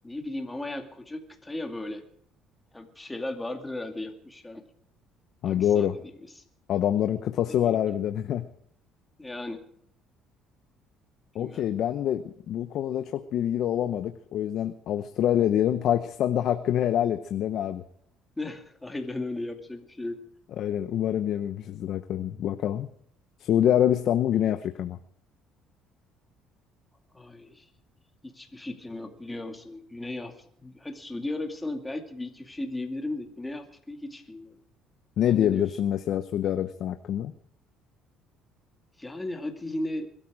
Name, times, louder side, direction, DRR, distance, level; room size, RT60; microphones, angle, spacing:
voice 1, 0.0-2.0 2.7-4.6 5.4-6.4 7.5-7.8 9.2-9.6 11.4-11.7 18.4-20.2 27.1-27.7 28.2-34.6 35.2-35.7 39.0-40.1, left 2 dB, 10° left, 5 dB, 2.3 m, -36 dB
voice 2, 5.4-6.0 6.7-8.5 11.3-17.8 20.6-22.9 23.4-25.0 35.2-37.3, left 10 dB, 60° left, 9 dB, 0.9 m, -26 dB
21.5 x 13.0 x 4.9 m, 0.67 s
cardioid pair, 115°, 0 cm